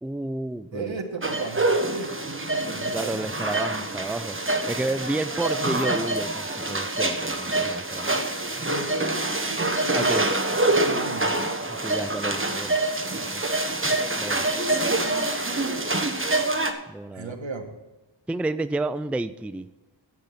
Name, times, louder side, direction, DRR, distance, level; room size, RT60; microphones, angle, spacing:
voice 1, 0.0-1.0 2.9-8.2 9.9-10.2 11.7-12.8 13.3-13.4 14.2-14.5 16.9-17.4 18.3-19.7, right 2 dB, 5° right, 12 dB, 0.4 m, -31 dB
voice 2, 0.7-3.3 8.6-10.2 10.8-11.3 17.1-17.7, right 3 dB, 75° right, 5 dB, 1.5 m, -35 dB
sound 1, 1.2-16.7, right 2 dB, 25° right, 1.2 m, -26 dB
10.5 x 8.2 x 5.8 m, 1.1 s
wide cardioid pair, 50°, 46 cm